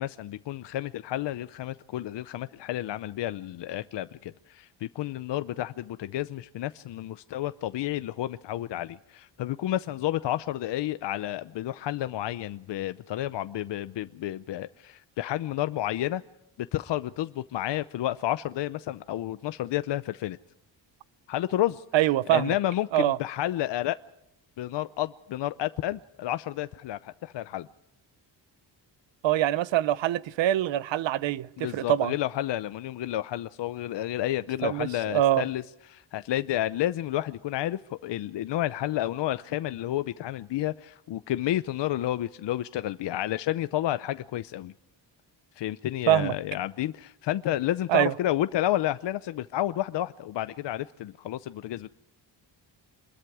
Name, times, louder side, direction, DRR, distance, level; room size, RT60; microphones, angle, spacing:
voice 1, 0.0-16.2 16.6-20.4 21.3-21.8 22.3-24.0 24.6-27.7 31.6-35.6 35.9-44.7 45.6-51.9, left 13 dB, 70° left, 0.7 m, -30 dB
voice 2, 21.9-22.5 22.9-23.2 29.2-31.5 31.7-32.1 34.6-35.4 46.1-46.3 47.9-48.1, right 13 dB, 85° right, 0.8 m, -24 dB
26.5 x 21.5 x 4.8 m
wide cardioid pair, 155°, 44 cm